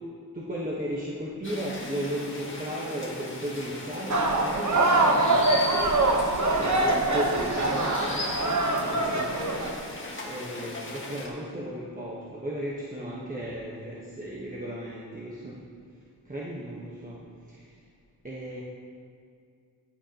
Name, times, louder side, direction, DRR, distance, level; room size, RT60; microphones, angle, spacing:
voice 1, 0.3-5.6 6.6-9.3 10.3-15.6 16.3-17.2 17.5-17.6 18.2-18.6, right 1 dB, 20° right, -6 dB, 1.2 m, -35 dB
sound 1, 1.4-11.3, left 2 dB, 30° left, 1.6 m, -38 dB
sound 2, 4.1-9.7, right 2 dB, 45° right, 1.1 m, -24 dB
14.5 x 10.5 x 2.9 m, 2.3 s
wide cardioid pair, 135°, 40 cm